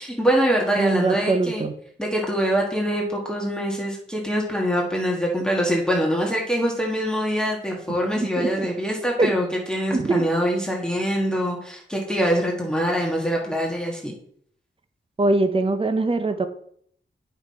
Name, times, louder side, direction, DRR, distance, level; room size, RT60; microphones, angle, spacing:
voice 1, 0.0-1.6 2.0-14.1, equal, 5° left, -2 dB, 1.7 m, -24 dB
voice 2, 0.8-1.7 8.2-8.7 9.2-9.3 9.9-10.2 15.2-16.5, right 2 dB, 25° right, 9 dB, 0.8 m, -22 dB
8.7 x 5.6 x 4.3 m, 0.64 s
wide cardioid pair, 80°, 21 cm